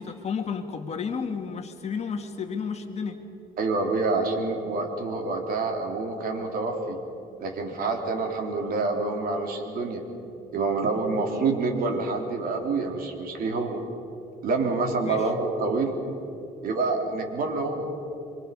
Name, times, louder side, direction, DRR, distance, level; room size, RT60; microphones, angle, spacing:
voice 1, 0.0-3.2 15.1-15.2, left 6 dB, 40° left, 5 dB, 2.1 m, -32 dB
voice 2, 3.6-7.0 7.4-10.0 10.5-13.8 14.4-16.0 16.6-17.9, right 3 dB, 60° right, 2 dB, 3.7 m, -27 dB
25.5 x 25.0 x 5.6 m, 2.9 s
cardioid pair, 110°, 17 cm